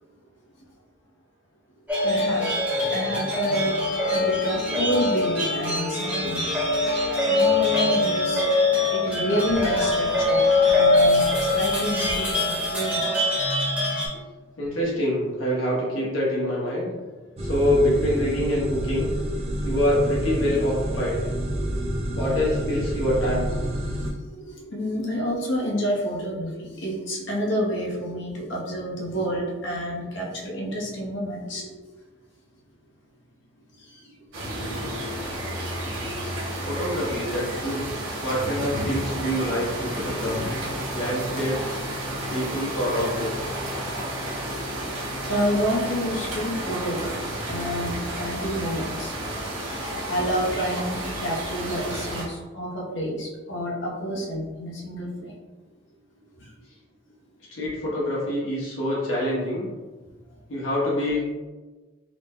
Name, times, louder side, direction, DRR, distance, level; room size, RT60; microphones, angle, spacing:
sound 1, 1.9-14.1, left 2 dB, 5° right, 0.9 m, -23 dB
voice 1, 2.0-2.5 2.9-3.8 4.1-6.5 6.8-13.0 24.3-31.7 44.1-44.9 45.3-49.1 49.6-55.3, equal, 60° left, -4 dB, 0.8 m, -29 dB
voice 2, 14.6-16.9 17.4-19.1 19.6-21.2 22.2-23.5 36.6-37.9 38.2-40.4 40.9-41.8 42.3-43.5 57.5-59.7 60.5-61.3, left 1 dB, 75° left, -6 dB, 1.1 m, -25 dB
sound 2, 17.4-24.1, right 1 dB, 30° right, 0.4 m, -28 dB
sound 3, 34.3-52.2, right 1 dB, 80° right, 1.0 m, -31 dB
3.7 x 2.1 x 3.6 m, 1.3 s
head